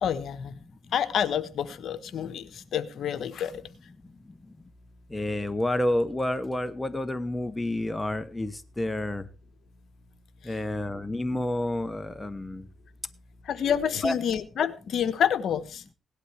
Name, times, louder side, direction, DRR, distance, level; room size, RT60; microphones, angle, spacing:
voice 1, 0.0-0.5 0.9-3.6 10.4-10.5 13.4-15.8, left 8 dB, 65° left, 12 dB, 1.3 m, -28 dB
voice 2, 5.1-9.2 10.4-12.7 14.0-14.1, left 1 dB, 10° left, 10 dB, 1.0 m, -29 dB
17.5 x 11.5 x 3.4 m, 0.31 s
cardioid pair, 90°, 0 cm